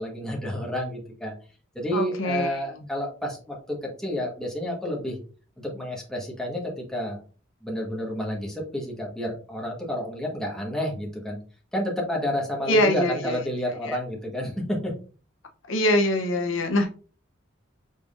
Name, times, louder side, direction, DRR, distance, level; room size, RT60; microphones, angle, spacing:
voice 1, 0.0-1.3 1.7-5.2 5.6-7.2 7.6-11.4 11.7-14.9, equal, 5° left, -2 dB, 1.3 m, -30 dB
voice 2, 1.9-2.6 12.7-13.4 13.8-14.0 15.7-16.9, left 1 dB, 70° left, 5 dB, 0.7 m, -23 dB
5.3 x 3.7 x 2.5 m, 0.38 s
head